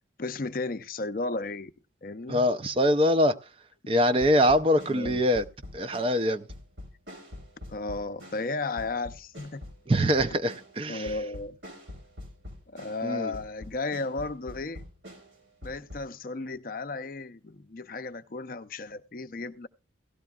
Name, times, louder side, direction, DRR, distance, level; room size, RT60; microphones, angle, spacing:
voice 1, 0.2-1.7 2.0-2.5 4.9-5.2 7.7-9.6 10.9-11.6 12.7-14.8 15.6-19.7, left 3 dB, 50° left, 0.5 m, -34 dB
voice 2, 2.3-3.4 3.9-5.5 5.7-6.5 9.9-11.1 13.0-13.3, equal, 30° right, 0.5 m, -23 dB
sound 1, 4.2-13.1 13.3-16.1, left 1 dB, 90° right, 4.7 m, -45 dB
17.0 x 13.0 x 2.3 m
head